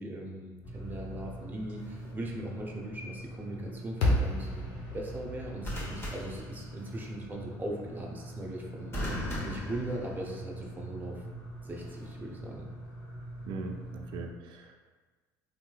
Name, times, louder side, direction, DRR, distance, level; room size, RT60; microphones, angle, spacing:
voice 1, 0.0-8.9 9.4-11.2 11.6-12.7, right 1 dB, 20° right, -1 dB, 0.7 m, -39 dB
sound 1, 0.6-14.2, right 1 dB, 50° left, 1.3 m, -44 dB
sound 2, 1.8-2.1 5.6-7.1 8.9-10.6 11.8-12.1, equal, 30° left, 1.1 m, -38 dB
sound 3, 4.0-8.3, left 1 dB, 70° left, 0.8 m, -33 dB
voice 2, 13.4-14.8, right 3 dB, 60° right, 3 dB, 0.4 m, -40 dB
3.1 x 3.0 x 2.2 m, 1.3 s
supercardioid pair, 80°, 9 cm